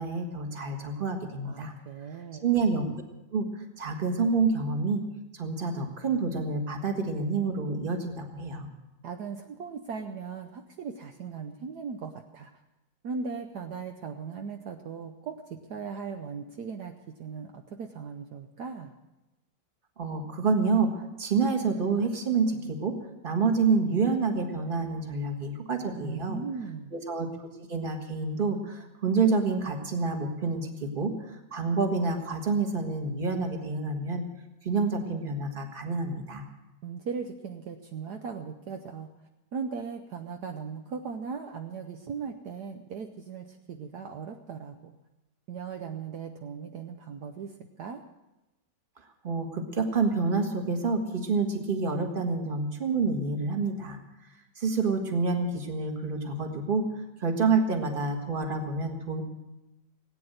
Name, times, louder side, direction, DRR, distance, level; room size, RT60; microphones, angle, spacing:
voice 1, 0.0-1.7 2.4-2.8 3.3-3.5 3.8-5.0 5.3-8.7 20.0-22.9 23.2-26.4 26.9-34.2 34.6-36.4 49.2-54.0 54.6-56.8 57.2-59.2, right 4 dB, 30° right, 4 dB, 1.7 m, -28 dB
voice 2, 1.4-2.4 9.0-12.5 13.0-18.9 25.9-26.9 36.8-39.1 39.5-44.9 45.5-48.0, right 5 dB, 65° right, 5 dB, 1.3 m, -38 dB
18.0 x 9.2 x 7.9 m, 0.99 s
omnidirectional pair, 2.0 m